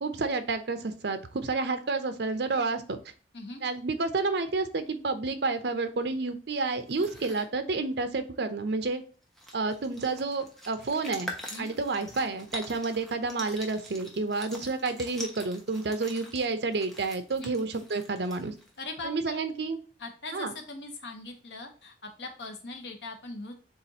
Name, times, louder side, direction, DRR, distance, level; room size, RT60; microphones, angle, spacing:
voice 1, 0.0-3.0 3.6-9.0 9.5-18.5 19.0-19.8 20.3-20.5, right 3 dB, 70° right, 9 dB, 0.6 m, -30 dB
sound 1, 6.8-7.5 8.9-9.0 9.2-18.8, equal, ahead, 0.9 m, -44 dB
voice 2, 18.8-19.4 20.0-23.5, left 2 dB, 75° left, 4 dB, 1.0 m, -40 dB
7.2 x 2.5 x 2.8 m, 0.40 s
head